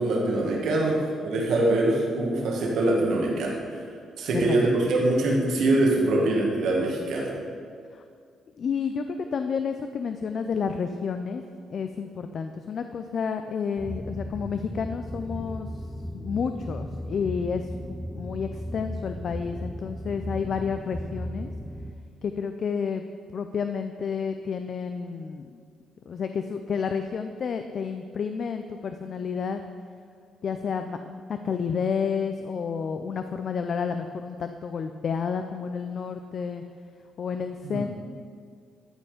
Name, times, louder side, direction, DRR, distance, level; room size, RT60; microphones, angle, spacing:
voice 1, 0.0-3.6 4.2-7.3 37.6-37.9, right 2 dB, 75° right, -2 dB, 1.8 m, -24 dB
voice 2, 4.3-4.9 7.9-8.0 8.6-11.4 11.7-15.8 16.1-21.5 22.2-23.0 23.3-25.6 26.1-29.6 30.4-36.6 37.2-37.9, left 6 dB, 55° left, 7 dB, 0.4 m, -30 dB
sound 1, 13.8-21.9, equal, 5° left, 0.6 m, -36 dB
12.5 x 4.3 x 5.0 m, 2.2 s
cardioid pair, 90°, 0 cm